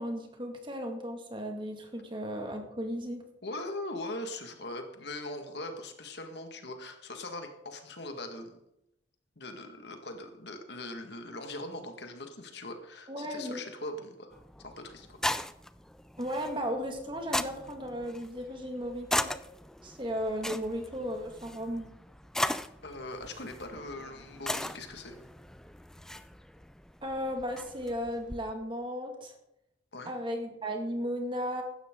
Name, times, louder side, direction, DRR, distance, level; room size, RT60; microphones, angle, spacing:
voice 1, 0.0-3.2 13.1-13.6 16.2-19.3 19.8-21.9 27.0-29.4 30.1-31.6, equal, 25° right, 3 dB, 2.1 m, -35 dB
voice 2, 3.4-8.6 9.4-15.2 22.8-25.2 29.9-30.1, left 2 dB, 60° left, 5 dB, 1.8 m, -41 dB
sound 1, 14.3-28.5, left 1 dB, 5° left, 0.3 m, -38 dB
16.0 x 12.0 x 3.8 m, 0.83 s
head